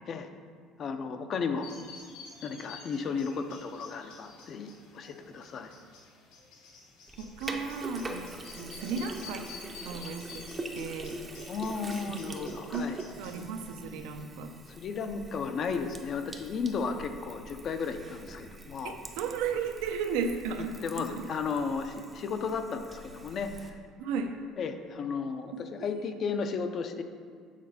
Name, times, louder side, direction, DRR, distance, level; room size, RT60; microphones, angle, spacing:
voice 1, 0.8-1.7 2.4-5.7 11.5-13.0 14.7-19.0 20.8-23.8 24.6-27.0, left 5 dB, 35° left, 8 dB, 0.4 m, -34 dB
sound 1, 1.6-13.4, left 5 dB, 75° left, 1.3 m, -51 dB
Sink (filling or washing), 7.1-23.7, right 2 dB, 15° right, 0.5 m, -44 dB
voice 2, 7.2-9.5 9.8-10.5 10.7-11.5 12.1-12.2 12.7-14.5 18.8-21.3 24.0-24.3 25.5-25.6, right 5 dB, 90° right, 6 dB, 0.6 m, -35 dB
7.3 x 4.2 x 5.7 m, 2.1 s
cardioid pair, 170°, 0 cm